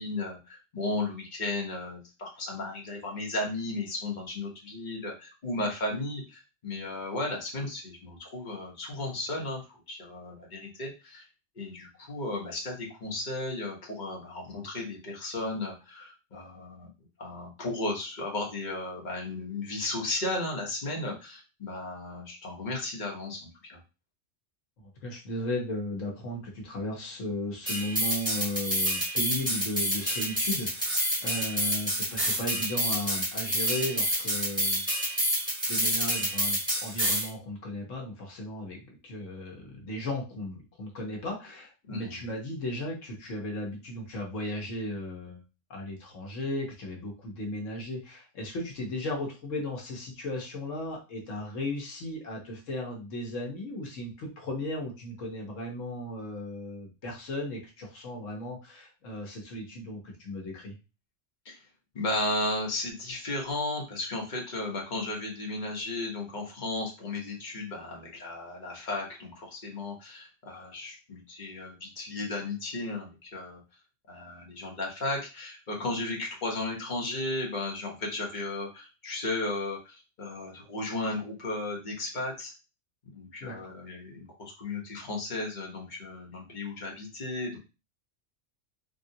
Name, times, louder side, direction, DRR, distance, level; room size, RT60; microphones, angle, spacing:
voice 1, 0.0-9.6 9.9-11.2 11.6-16.9 17.2-23.8 41.9-42.2 61.4-61.5 61.9-73.6 74.1-82.5 83.1-87.6, left 2 dB, 40° left, -1 dB, 1.0 m, -34 dB
voice 2, 24.8-34.9 35.7-45.4 45.7-60.8 83.4-83.7, left 1 dB, 80° left, -1 dB, 1.3 m, -36 dB
sound 1, 27.7-37.3, equal, 5° right, 1.2 m, -28 dB
3.7 x 2.4 x 2.7 m, 0.30 s
omnidirectional pair, 1.3 m